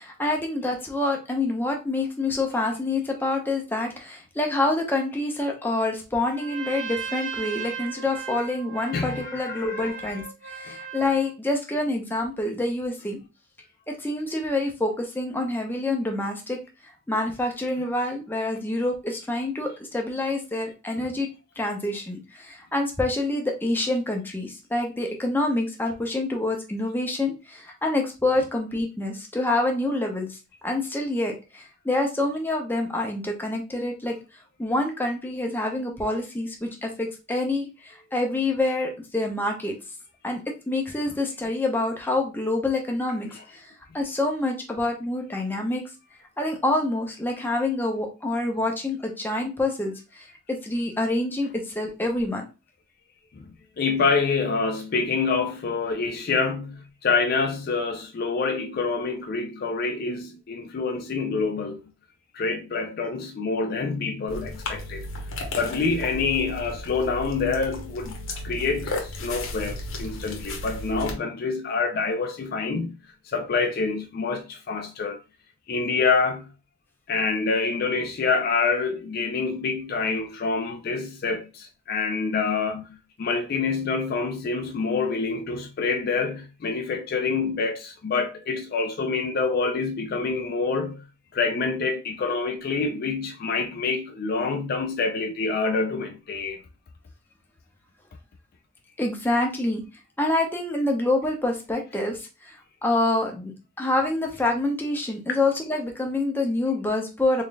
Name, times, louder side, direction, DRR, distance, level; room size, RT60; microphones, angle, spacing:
voice 1, 0.0-10.2 10.5-13.2 13.9-16.6 17.1-21.3 21.6-30.4 30.6-34.2 34.6-39.8 40.2-40.4 40.7-43.7 43.9-45.8 46.4-52.4 99.0-99.8 100.2-103.5 103.8-107.4, left 2 dB, 10° left, 0.7 m, -27 dB
Trumpet, 6.3-11.3, right 6 dB, 65° right, 0.9 m, -36 dB
voice 2, 8.9-9.9 10.7-10.8 21.0-21.1 43.3-43.4 53.4-61.9 62.3-65.1 65.6-68.1 68.4-73.0 73.3-75.2 75.7-76.5 77.1-91.0 91.3-96.6 105.3-105.4, left 4 dB, 45° left, 0.4 m, -27 dB
sound 1, 64.3-71.1, left 1 dB, 80° left, 1.0 m, -34 dB
3.7 x 3.6 x 2.2 m
head